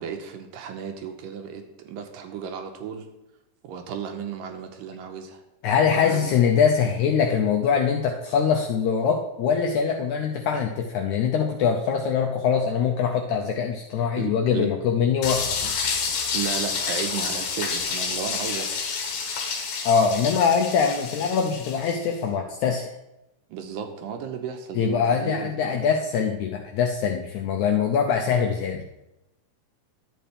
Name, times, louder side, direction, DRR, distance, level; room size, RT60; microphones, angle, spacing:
voice 1, 0.0-3.0 3.6-5.4 5.8-6.3 14.1-14.7 16.3-18.8 23.5-25.6, right 7 dB, 85° right, 5 dB, 2.5 m, -34 dB
voice 2, 5.6-15.7 19.8-22.8 24.7-28.8, left 6 dB, 85° left, 2 dB, 1.7 m, -23 dB
sound 1, 15.2-22.1, left 5 dB, 65° left, 2.1 m, -29 dB
11.5 x 7.7 x 3.3 m, 0.92 s
omnidirectional pair, 4.0 m